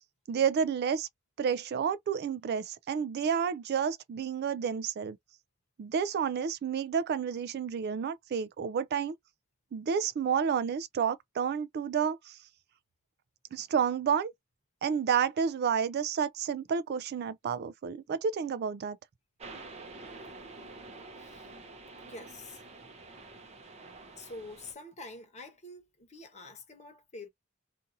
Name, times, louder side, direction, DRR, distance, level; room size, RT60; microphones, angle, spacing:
voice 1, 0.3-1.1 1.4-5.2 5.8-9.2 9.7-12.4 13.5-14.3 14.8-19.0, right 7 dB, 50° right, 0.3 m, -30 dB
sound 1, 19.4-24.7, right 3 dB, 30° right, 0.7 m, -48 dB
voice 2, 21.2-21.5 22.0-22.6 24.2-27.3, left 2 dB, 35° left, 1.0 m, -47 dB
2.6 x 2.5 x 2.7 m
head